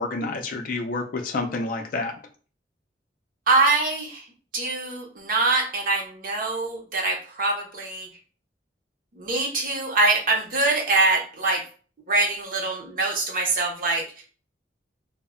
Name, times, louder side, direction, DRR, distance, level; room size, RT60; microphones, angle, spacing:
voice 1, 0.0-2.1, left 3 dB, 50° left, 4 dB, 0.3 m, -28 dB
voice 2, 3.5-4.2 4.5-8.1 9.2-11.6 12.1-14.1, right 3 dB, 50° right, 1 dB, 0.6 m, -24 dB
2.0 x 2.0 x 3.5 m, 0.39 s
head